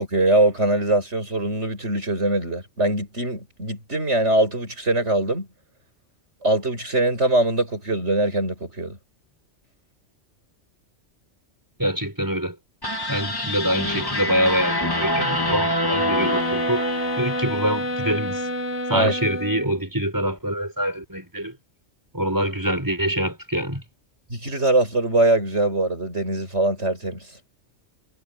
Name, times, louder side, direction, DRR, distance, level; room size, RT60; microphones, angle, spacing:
voice 1, 0.0-5.5 6.4-9.0 18.9-19.1 24.3-27.3, right 2 dB, 65° right, 7.2 m, -22 dB
voice 2, 11.8-12.6 13.1-16.8 17.2-18.4 18.9-21.6 22.1-23.8, equal, 15° right, 6.9 m, -25 dB
sound 1, 12.8-18.1, left 1 dB, 15° left, 2.3 m, -26 dB
sound 2, 15.9-19.8, equal, 70° left, 2.3 m, -28 dB
omnidirectional pair, 1.3 m